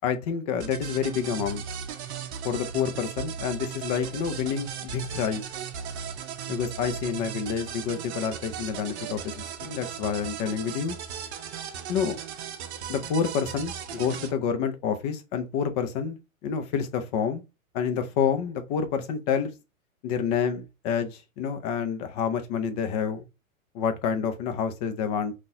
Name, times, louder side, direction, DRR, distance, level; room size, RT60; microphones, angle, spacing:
voice 1, 0.0-1.6 2.4-5.4 6.5-11.0 11.9-12.2 12.9-17.4 17.7-19.5 20.0-23.2 23.7-25.3, left 7 dB, 30° left, 0.6 m, -28 dB
sound 1, 0.6-14.3, right 7 dB, 55° right, 0.7 m, -37 dB
3.8 x 2.5 x 2.7 m
hypercardioid pair, 135°, 42 cm